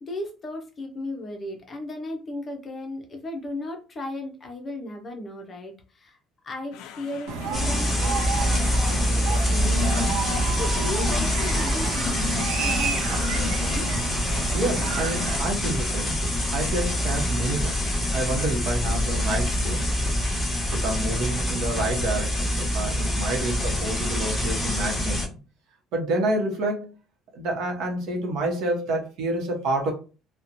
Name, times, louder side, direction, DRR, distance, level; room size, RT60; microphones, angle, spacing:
voice 1, 0.0-6.2 6.4-10.1 10.6-13.9, left 2 dB, 25° left, 0.6 m, -36 dB
sound 1, 6.7-20.0, left 8 dB, 75° left, 0.3 m, -39 dB
sound 2, 7.3-15.4, right 5 dB, 85° right, 0.5 m, -31 dB
sound 3, 7.5-25.3, equal, 5° left, 1.1 m, -25 dB
voice 2, 14.5-16.1 16.5-17.8 18.1-19.9 20.7-25.4 25.9-26.9 27.3-29.9, right 1 dB, 60° right, 0.8 m, -28 dB
2.9 x 2.1 x 2.5 m
cardioid pair, 170°, 0 cm